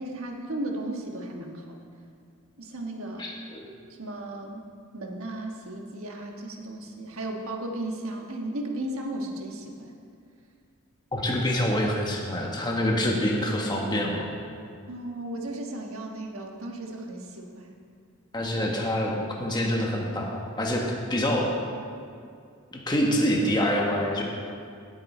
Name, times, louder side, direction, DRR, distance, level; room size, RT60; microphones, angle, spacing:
voice 1, 0.0-1.8 2.6-3.3 4.0-4.7 4.9-9.9 14.9-17.8, right 1 dB, 70° right, 1 dB, 1.5 m, -35 dB
voice 2, 3.2-3.6 11.1-14.3 18.3-21.5 22.7-24.2, equal, 20° left, -2 dB, 1.2 m, -26 dB
18.0 x 8.0 x 4.3 m, 2.3 s
head